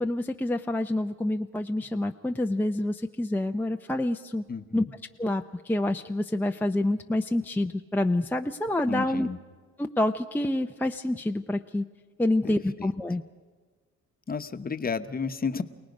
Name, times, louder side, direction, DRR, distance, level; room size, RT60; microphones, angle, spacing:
voice 1, 0.0-4.4 4.7-4.8 5.2-9.3 9.8-11.8 12.2-13.2, left 1 dB, 5° left, 4 dB, 0.6 m, -27 dB
voice 2, 4.5-4.8 8.8-9.4 12.4-12.9 14.3-15.6, left 5 dB, 30° left, 9 dB, 1.1 m, -32 dB
28.5 x 18.5 x 5.3 m, 1.5 s
cardioid pair, 90°, 30 cm